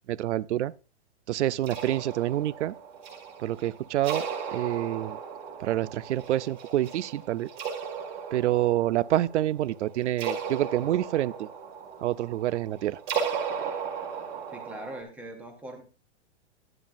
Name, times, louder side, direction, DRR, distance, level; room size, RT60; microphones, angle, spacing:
voice 1, 0.1-0.7 1.3-2.7 3.4-4.3 4.5-5.2 5.6-7.5 8.3-11.5 12.0-13.0 13.6-13.7, right 13 dB, 90° right, 0.6 m, -27 dB
sound 1, 1.6-15.0, right 6 dB, 25° right, 2.0 m, -36 dB
voice 2, 14.5-15.8, right 1 dB, 5° right, 0.7 m, -41 dB
12.0 x 11.0 x 2.6 m
supercardioid pair, 175°, 34 cm